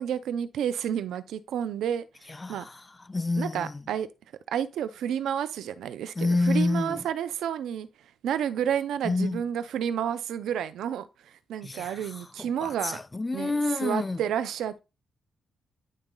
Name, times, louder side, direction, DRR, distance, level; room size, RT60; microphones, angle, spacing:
voice 1, 0.0-2.7 3.4-4.1 4.5-7.9 8.2-13.0 13.3-14.7, right 9 dB, 90° right, 0.6 m, -30 dB
voice 2, 2.4-2.8 3.1-3.7 6.2-7.0 9.0-9.4 11.6-12.1 12.4-14.2, left 2 dB, 20° left, 0.3 m, -28 dB
10.0 x 4.0 x 3.8 m
cardioid pair, 120°, 0 cm